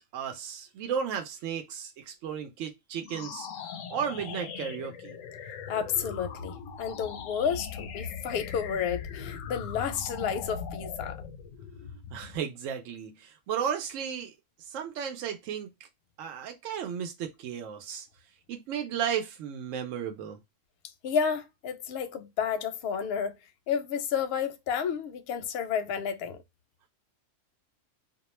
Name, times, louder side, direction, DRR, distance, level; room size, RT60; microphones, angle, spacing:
voice 1, 0.1-5.2 12.1-14.3 14.7-15.7 16.2-18.1 18.5-20.4, right 8 dB, 80° right, 0.9 m, -34 dB
sound 1, 2.9-12.5, left 7 dB, 90° left, 1.0 m, -40 dB
voice 2, 5.7-11.2 21.0-23.3 23.7-26.4, left 7 dB, 65° left, 0.7 m, -31 dB
2.3 x 2.2 x 3.0 m
omnidirectional pair, 1.3 m